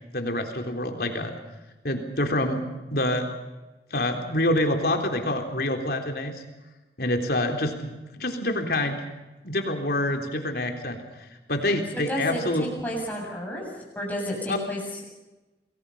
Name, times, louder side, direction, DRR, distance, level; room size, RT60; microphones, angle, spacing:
voice 1, 0.1-1.3 1.8-2.6 2.9-3.3 3.9-6.4 7.0-7.9 8.2-9.0 9.4-11.0 11.5-12.6 14.5-14.6, left 1 dB, 60° left, 4 dB, 3.7 m, -26 dB
voice 2, 11.9-13.6 13.9-15.0, equal, 10° left, -2 dB, 7.8 m, -31 dB
28.5 x 21.0 x 5.6 m, 1.1 s
head